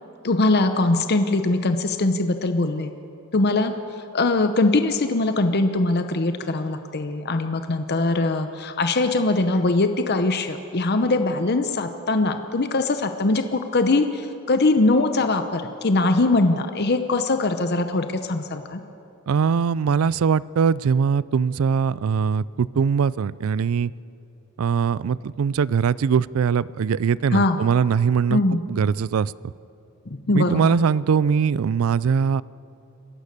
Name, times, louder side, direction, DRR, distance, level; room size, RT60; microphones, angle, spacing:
voice 1, 0.2-2.9 3.3-3.7 4.1-18.8 27.3-27.6 28.3-28.6 30.1-30.8, left 2 dB, 50° left, 8 dB, 0.8 m, -22 dB
voice 2, 19.3-23.9 24.6-29.3 30.3-32.4, right 6 dB, 70° right, 21 dB, 0.4 m, -21 dB
27.5 x 15.0 x 6.7 m, 2.8 s
head